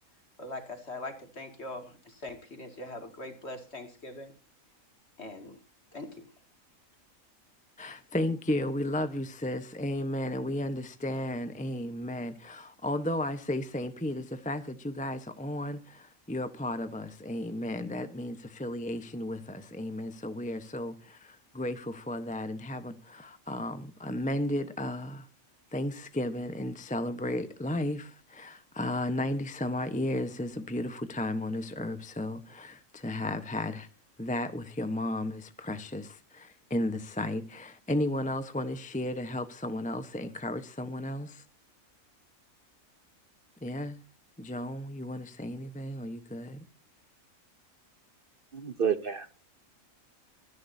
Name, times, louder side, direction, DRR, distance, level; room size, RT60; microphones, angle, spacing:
voice 1, 0.4-4.3 5.2-5.6 5.9-6.3, left 2 dB, 50° left, 2.7 m, -42 dB
voice 2, 7.8-25.3 25.7-33.9 34.2-41.4 43.6-44.0 44.4-46.6, left 1 dB, 5° left, 0.9 m, -34 dB
voice 3, 48.5-49.4, right 7 dB, 45° right, 1.0 m, -30 dB
24.0 x 10.5 x 2.7 m
omnidirectional pair, 1.4 m